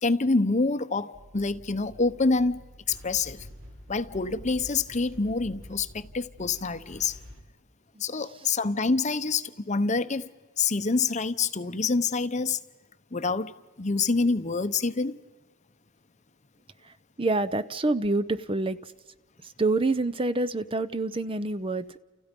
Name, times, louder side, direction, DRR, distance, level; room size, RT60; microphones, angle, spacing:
voice 1, 0.0-2.6 2.9-3.5 3.9-7.2 8.0-10.3 10.6-12.6 13.1-13.5 13.8-15.2, left 3 dB, 35° left, 0.8 m, -26 dB
sound 1, 1.1-7.4, equal, 65° right, 4.2 m, -48 dB
voice 2, 17.2-18.9 19.6-22.0, right 2 dB, 25° right, 0.7 m, -27 dB
30.0 x 29.5 x 5.3 m
head